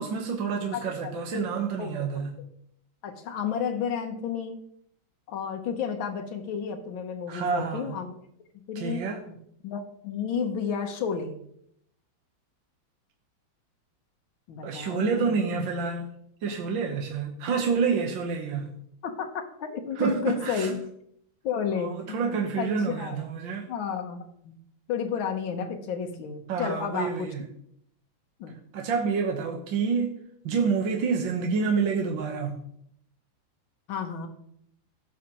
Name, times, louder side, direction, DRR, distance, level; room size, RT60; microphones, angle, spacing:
voice 1, 0.0-2.4 7.3-8.0 8.8-9.2 14.6-16.1 16.4-18.7 20.0-20.7 21.8-23.7 26.5-27.4 28.7-30.1 30.5-32.6, right 5 dB, 75° right, 2 dB, 1.8 m, -28 dB
voice 2, 0.7-1.5 1.8-2.2 3.0-4.6 5.3-8.2 8.7-9.4 9.6-11.4 14.5-15.4 19.0-19.3 19.6-20.8 21.4-23.3 23.7-24.5 24.9-27.3 28.4-28.6 33.9-34.3, left 6 dB, 85° left, 4 dB, 1.8 m, -32 dB
15.5 x 6.2 x 2.9 m, 0.71 s
omnidirectional pair, 2.1 m